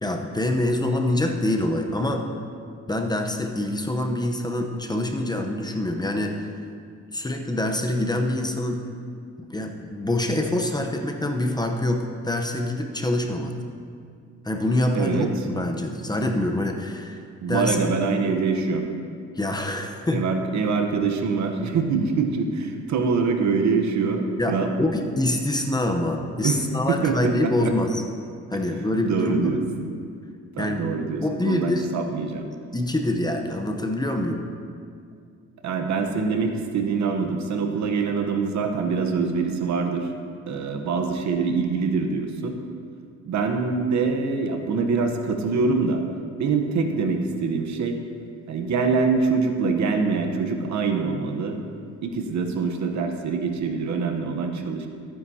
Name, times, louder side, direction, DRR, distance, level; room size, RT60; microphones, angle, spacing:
voice 1, 0.0-2.2 2.9-6.4 7.1-8.8 9.4-13.5 14.4-17.2 17.5-17.8 19.4-20.2 24.4-28.0 28.5-29.6 30.6-30.9 31.2-31.9 32.5-34.4, left 1 dB, 15° left, 3 dB, 0.9 m, -25 dB
voice 2, 14.9-15.3 17.4-18.8 20.1-24.7 26.4-26.6 26.9-27.7 28.5-28.6 29.0-29.6 30.6-32.5 35.6-40.1 40.5-42.5 43.3-46.0 46.4-48.0 48.5-51.6 52.0-54.9, right 4 dB, 65° right, 5 dB, 1.0 m, -24 dB
14.0 x 9.5 x 2.8 m, 2.2 s
cardioid pair, 90°, 30 cm